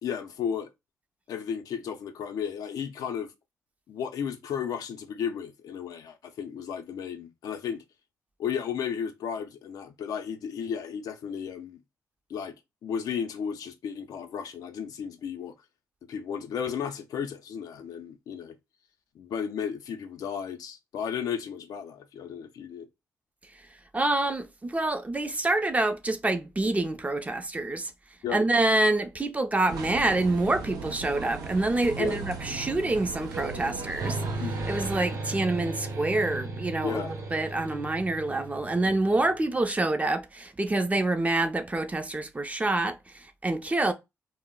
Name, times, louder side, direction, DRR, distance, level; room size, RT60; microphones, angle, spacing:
voice 1, 0.0-0.7 1.3-3.3 3.9-7.8 8.4-11.8 12.3-12.5 12.8-15.5 16.1-18.6 19.1-22.9 28.2-28.5 32.0-32.2 34.4-34.5 36.8-37.1, left 7 dB, 80° left, 0.4 m, -34 dB
voice 2, 23.9-27.9 28.3-34.2 34.7-43.9, right 2 dB, 25° right, 0.5 m, -27 dB
sound 1, 29.7-35.0, right 4 dB, 90° right, 0.5 m, -37 dB
sound 2, 34.0-39.5, right 2 dB, 60° right, 0.8 m, -35 dB
2.2 x 2.0 x 3.6 m
cardioid pair, 60°, 6 cm